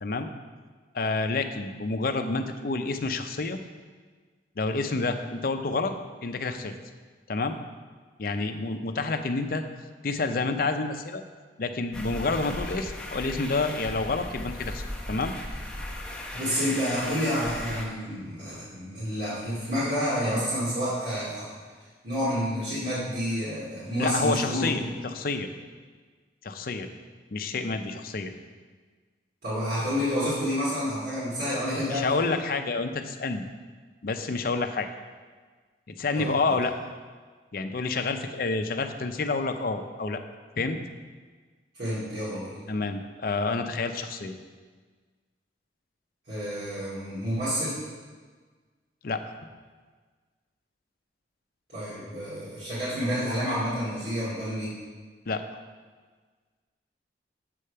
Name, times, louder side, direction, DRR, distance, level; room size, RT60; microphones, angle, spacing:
voice 1, 0.9-3.6 4.6-5.9 6.2-6.7 7.3-7.6 8.2-9.6 10.0-11.2 11.6-15.3 24.0-25.5 26.4-26.9 27.3-28.3 31.9-33.5 34.0-34.9 36.0-36.7 37.5-40.2 40.6-40.8 42.7-44.3 49.0-49.2 55.3-55.6, left 3 dB, 55° left, 7 dB, 0.5 m, -28 dB
sound 1, 11.9-17.8, left 1 dB, 5° left, 0.8 m, -37 dB
voice 2, 16.3-21.5 22.0-24.9 29.4-32.4 36.2-36.3 41.7-42.5 46.3-47.8 51.7-54.7, equal, 65° right, -11 dB, 2.3 m, -29 dB
7.6 x 5.0 x 5.5 m, 1.5 s
head